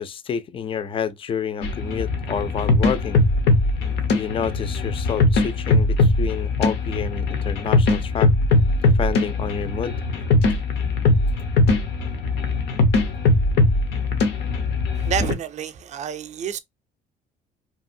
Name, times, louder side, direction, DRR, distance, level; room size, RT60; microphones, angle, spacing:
voice 1, 0.0-3.2 4.1-8.3 8.8-10.0, left 7 dB, 30° left, 0.4 m, -29 dB
sound 1, 1.6-15.3, left 2 dB, 80° left, 0.8 m, -20 dB
voice 2, 14.9-16.6, right 8 dB, 45° right, 0.4 m, -28 dB
2.8 x 2.5 x 2.5 m
cardioid pair, 110°, 17 cm